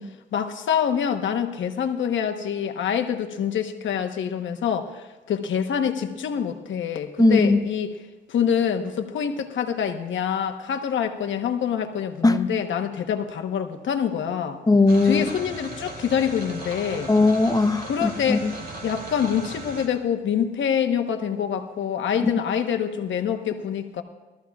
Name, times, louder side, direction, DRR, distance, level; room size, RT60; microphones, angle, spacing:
voice 1, 0.3-8.0 8.3-14.6 15.0-17.1 17.8-18.5 18.8-24.0, left 8 dB, 75° left, 5 dB, 1.1 m, -26 dB
voice 2, 7.2-7.6 12.2-12.4 14.7-15.2 17.1-18.5 22.2-22.3, left 3 dB, 20° left, 8 dB, 0.8 m, -18 dB
sound 1, 14.9-19.9, right 2 dB, 50° right, 2.9 m, -37 dB
21.0 x 14.0 x 2.4 m, 1.2 s
cardioid pair, 75°, 20 cm